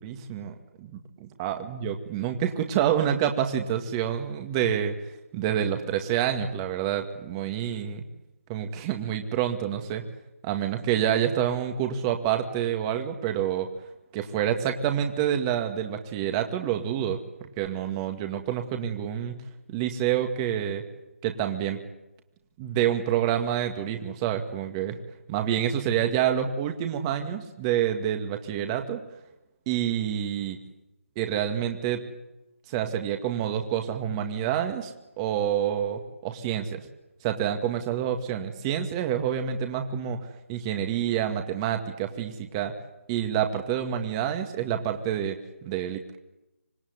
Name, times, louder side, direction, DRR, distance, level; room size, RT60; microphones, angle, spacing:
voice 1, 0.0-1.0 1.4-5.0 5.3-8.0 8.5-10.0 10.4-13.7 14.1-17.2 17.6-19.4 19.7-20.8 21.2-21.8 22.6-25.0 25.3-29.0 29.7-30.6 31.2-32.0 32.7-36.8 37.2-40.2 40.5-42.7 43.1-46.2, right 10 dB, 20° right, 5 dB, 2.1 m, -27 dB
26.5 x 20.0 x 9.6 m, 0.95 s
figure-of-eight pair, 155°, 7 cm